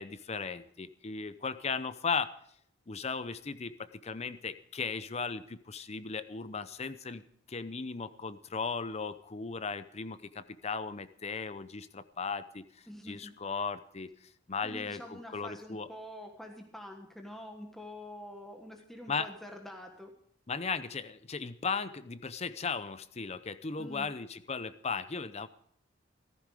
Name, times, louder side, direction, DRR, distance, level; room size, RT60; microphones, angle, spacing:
voice 1, 0.0-2.3 2.9-7.2 7.5-15.9 19.1-19.3 20.5-25.5, left 5 dB, 35° left, 13 dB, 0.7 m, -37 dB
voice 2, 12.9-13.3 14.6-20.1 23.8-24.1, equal, ahead, 2 dB, 1.4 m, -46 dB
14.5 x 14.5 x 5.0 m, 0.64 s
head